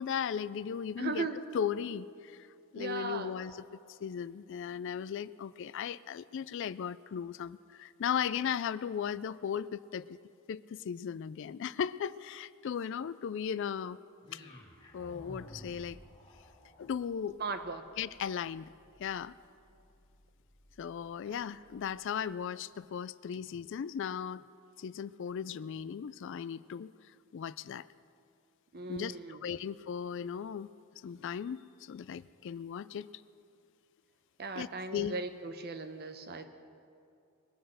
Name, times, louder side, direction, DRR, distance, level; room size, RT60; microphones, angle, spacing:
voice 1, 0.0-1.3 1.5-2.5 2.7-10.2 10.5-14.0 14.3-14.4 14.9-16.0 16.8-17.4 18.0-18.7 19.0-19.4 20.8-24.4 24.8-26.9 27.3-27.9 28.9-30.7 31.0-33.1 34.5-35.1, left 8 dB, 55° left, 17 dB, 0.3 m, -37 dB
voice 2, 1.0-1.4 2.8-3.3 17.4-17.9 28.7-29.4 34.4-36.5, right 4 dB, 45° right, 8 dB, 0.9 m, -37 dB
sound 1, 14.2-22.4, left 1 dB, 25° left, 2.2 m, -55 dB
21.5 x 7.9 x 6.4 m, 2.5 s
head